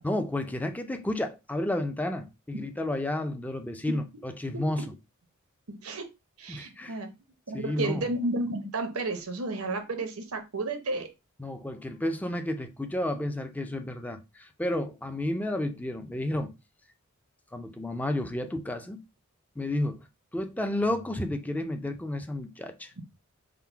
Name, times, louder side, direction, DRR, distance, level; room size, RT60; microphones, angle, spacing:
voice 1, 0.0-4.9 6.5-7.0 7.5-8.1 11.4-16.5 17.5-19.0 19.6-20.1 20.3-22.9, left 1 dB, 5° left, 0.5 m, -31 dB
voice 2, 5.7-6.1 6.4-7.1 7.5-11.1, right 2 dB, 85° right, 0.9 m, -32 dB
3.8 x 2.1 x 4.4 m
head